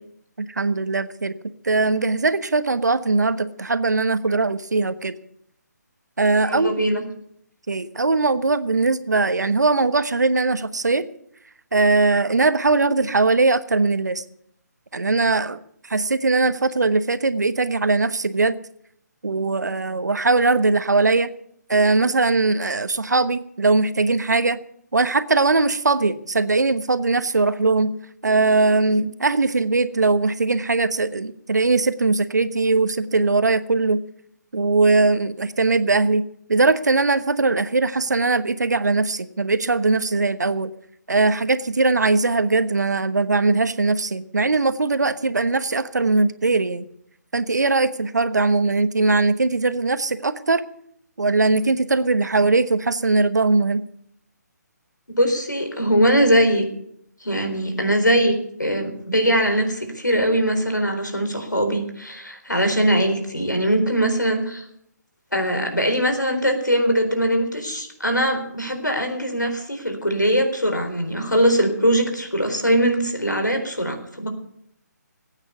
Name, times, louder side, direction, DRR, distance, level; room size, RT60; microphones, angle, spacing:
voice 1, 0.4-1.4 1.6-5.1 6.2-6.7 7.7-11.1 11.7-14.2 14.9-15.6 15.9-18.6 19.2-21.3 21.7-24.6 24.9-28.0 28.2-34.0 34.5-40.7 41.1-46.8 47.3-50.6 51.2-53.9, right 3 dB, 70° right, 13 dB, 1.1 m, -20 dB
voice 2, 6.5-7.0 55.2-56.6 57.2-64.7 65.3-74.3, equal, 90° left, 5 dB, 4.1 m, -21 dB
19.0 x 9.0 x 6.9 m, 0.71 s
figure-of-eight pair, 145°, 10 cm